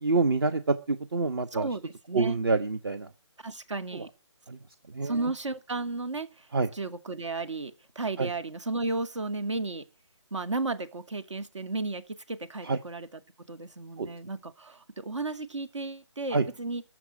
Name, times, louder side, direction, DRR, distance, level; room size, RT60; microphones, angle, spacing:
voice 1, 0.0-1.7 2.1-3.1 3.9-4.0 4.5-4.6 4.9-5.1 6.5-6.7 8.2-8.3 12.6-12.8 14.0-14.1 16.3-16.4, right 3 dB, 50° right, 1.2 m, -27 dB
voice 2, 1.5-2.4 3.4-4.1 5.0-9.9 10.3-13.2 13.5-16.8, right 3 dB, 75° right, 2.2 m, -34 dB
14.5 x 6.2 x 10.0 m
hypercardioid pair, 170°, 15 cm